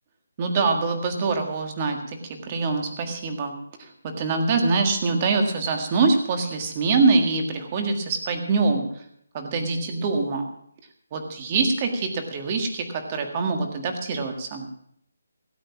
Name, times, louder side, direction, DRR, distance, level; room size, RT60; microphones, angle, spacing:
voice 1, 0.4-3.5 3.8-9.0 9.3-10.4 11.1-14.7, right 3 dB, 25° right, 4 dB, 1.7 m, -24 dB
17.0 x 8.1 x 6.1 m, 0.68 s
hypercardioid pair, 170°, 0 cm